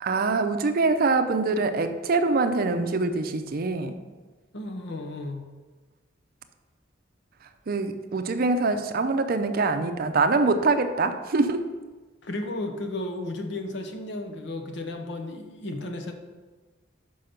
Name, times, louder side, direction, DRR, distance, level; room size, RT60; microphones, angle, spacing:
voice 1, 0.0-4.0 7.7-11.6, right 3 dB, 50° right, 8 dB, 0.5 m, -24 dB
voice 2, 4.5-5.4 12.2-16.1, left 2 dB, 65° left, 5 dB, 0.9 m, -34 dB
5.8 x 5.5 x 5.1 m, 1.3 s
head